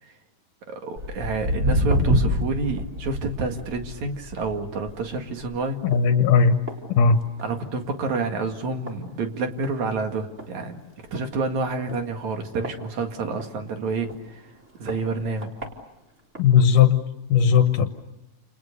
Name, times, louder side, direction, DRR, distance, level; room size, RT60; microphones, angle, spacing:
voice 1, 0.7-5.8 7.4-10.8 11.1-14.4 14.7-15.5, right 3 dB, 60° right, 5 dB, 3.3 m, -29 dB
Walk footsteps, 1.0-7.6 7.9-8.3 8.9-9.0 9.6-9.7 10.1-10.2 10.4-10.5 11.1-11.2 11.9-13.5 14.1-14.2 14.9-15.0 15.4-15.7 16.3-16.4, equal, 20° right, 4.2 m, -27 dB
voice 2, 5.8-6.6 7.0-7.2 16.4-17.0 17.3-17.9, left 6 dB, 75° left, 8 dB, 2.8 m, -17 dB
30.0 x 29.0 x 6.9 m, 0.94 s
omnidirectional pair, 3.8 m